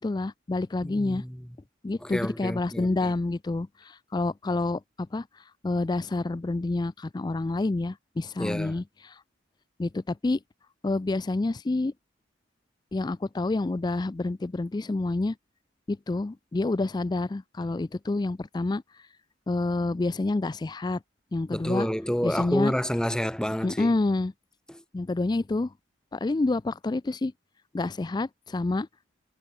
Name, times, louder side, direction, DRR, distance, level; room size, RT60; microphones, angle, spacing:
voice 1, 0.0-1.2 1.8-5.3 5.6-9.2 9.8-10.4 10.8-11.9 12.9-15.4 15.9-18.8 19.5-21.0 21.3-21.9 22.2-22.7 23.6-24.3 24.9-25.7 26.1-27.3 27.7-28.9, left 2 dB, 20° left, 0.4 m, -28 dB
voice 2, 0.8-1.4 2.0-3.1 8.4-8.8 21.5-23.9 24.7-24.8, equal, 5° left, 1.3 m, -29 dB
head